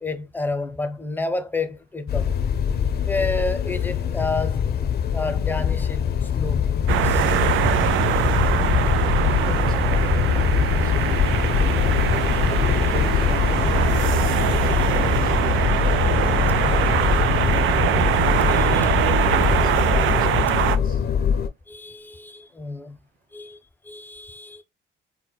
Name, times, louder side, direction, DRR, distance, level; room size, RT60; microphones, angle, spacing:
voice 1, 0.0-2.3 3.0-4.7 5.1-6.7 7.0-7.2 18.5-18.8 21.7-23.0 23.3-23.6 23.8-24.6, left 3 dB, 10° left, 0.6 m, -30 dB
sound 1, 2.1-21.5, left 7 dB, 55° left, 0.5 m, -22 dB
voice 2, 2.5-2.8 7.7-12.1 12.6-18.1 18.7-21.1 22.0-22.1, right 5 dB, 45° right, 0.9 m, -39 dB
sound 2, 6.9-20.8, right 10 dB, 75° right, 0.4 m, -22 dB
4.3 x 2.1 x 2.2 m
cardioid pair, 90°, 20 cm